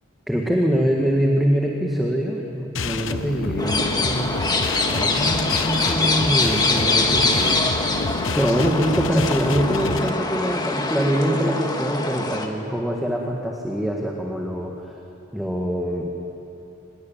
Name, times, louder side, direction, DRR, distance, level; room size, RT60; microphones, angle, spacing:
voice 1, 0.3-4.4 4.9-8.1 8.3-15.0 15.3-16.1, equal, ahead, -1 dB, 1.9 m, -24 dB
sound 1, 2.7-10.1, left 3 dB, 65° left, 1.0 m, -28 dB
sound 2, 3.6-12.5, left 3 dB, 20° left, 1.7 m, -24 dB
25.0 x 21.0 x 9.1 m, 2.8 s
head